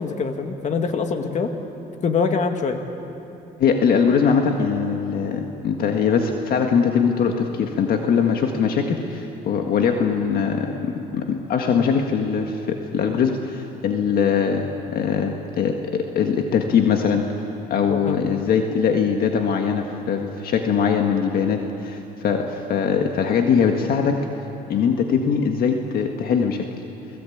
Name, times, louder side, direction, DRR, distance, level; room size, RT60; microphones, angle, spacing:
voice 1, 0.0-1.5 2.0-2.8 17.9-18.2, left 5 dB, 45° left, 5 dB, 2.2 m, -24 dB
voice 2, 3.6-17.4 17.7-24.3 24.7-26.7, left 6 dB, 60° left, 3 dB, 1.7 m, -21 dB
29.5 x 20.0 x 8.6 m, 2.9 s
cardioid pair, 110°, 17 cm